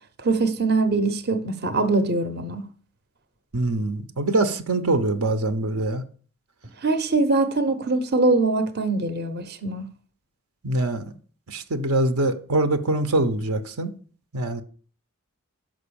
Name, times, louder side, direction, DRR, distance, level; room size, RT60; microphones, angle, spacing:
voice 1, 0.2-2.7 6.8-9.9, right 3 dB, 45° right, 0.8 m, -23 dB
voice 2, 3.5-6.0 10.6-11.1 11.5-13.9 14.3-14.6, right 2 dB, 80° right, 0.9 m, -23 dB
6.2 x 5.3 x 6.9 m
head